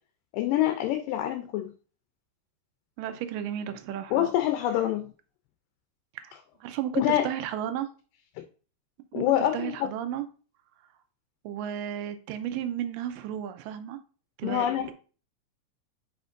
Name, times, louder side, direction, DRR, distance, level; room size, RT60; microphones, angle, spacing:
voice 1, 0.3-1.7 4.1-5.1 7.0-7.3 9.1-9.9 14.4-14.9, left 12 dB, 80° left, 2.2 m, -26 dB
voice 2, 3.0-4.3 6.2-6.3 6.6-7.9 9.1-10.3 11.4-14.0 14.4-14.9, right 10 dB, 85° right, 2.2 m, -33 dB
8.0 x 5.1 x 2.5 m
omnidirectional pair, 3.9 m